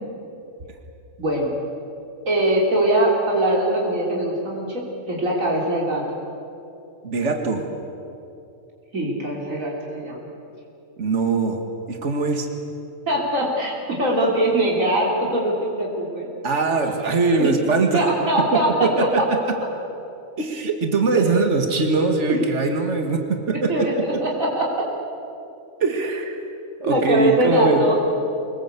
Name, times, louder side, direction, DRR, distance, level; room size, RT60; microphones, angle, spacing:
voice 1, 1.2-1.5 2.3-6.0 8.9-10.2 13.1-16.3 17.4-17.5 17.9-19.1 22.3-22.4 23.0-23.1 23.7-24.7 26.9-27.9, right 1 dB, 90° right, -3 dB, 4.0 m, -22 dB
voice 2, 7.0-7.6 11.0-11.6 11.9-12.5 16.4-18.0 18.8-19.2 20.4-24.0 25.8-26.4 26.8-27.8, right 4 dB, 65° right, 4 dB, 2.3 m, -21 dB
25.0 x 20.5 x 8.3 m, 2.7 s
omnidirectional pair, 1.4 m